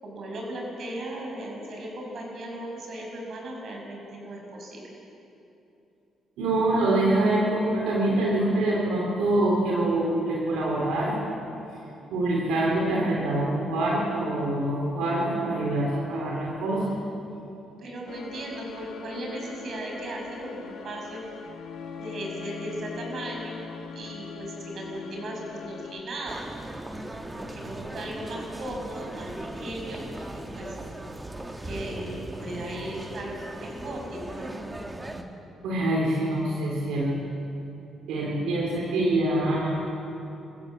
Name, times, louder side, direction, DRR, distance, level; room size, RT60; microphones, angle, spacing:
voice 1, 0.0-4.9 17.8-21.2 22.0-23.6 23.9-26.4 27.3-30.1 30.3-30.7 31.6-34.6, right 1 dB, 60° right, 0 dB, 6.6 m, -37 dB
voice 2, 6.4-11.2 12.1-16.9 35.6-37.2 38.1-39.8, right 1 dB, 90° right, -3 dB, 3.5 m, -25 dB
sound 1, 18.1-26.0, left 6 dB, 80° left, 1.9 m, -41 dB
sound 2, 26.3-35.2, right 1 dB, 15° right, 1.8 m, -38 dB
24.5 x 15.0 x 7.8 m, 2.9 s
cardioid pair, 90°, 0 cm